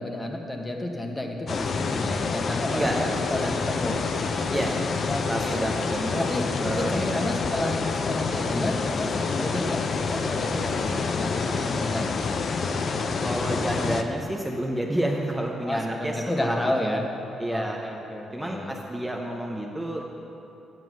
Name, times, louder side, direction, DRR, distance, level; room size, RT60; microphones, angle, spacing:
voice 1, 0.0-4.0 5.1-5.7 6.2-6.5 6.8-12.2 15.6-17.1 17.5-18.7, left 1 dB, 15° left, 2 dB, 1.2 m, -31 dB
sound 1, 1.5-14.0, left 4 dB, 50° left, 0.6 m, -27 dB
voice 2, 5.3-6.3 6.6-7.2 13.2-17.0 17.4-17.8 18.3-20.3, right 1 dB, 10° right, -1 dB, 0.8 m, -30 dB
9.3 x 7.5 x 6.2 m, 2.9 s
cardioid pair, 90°, 0 cm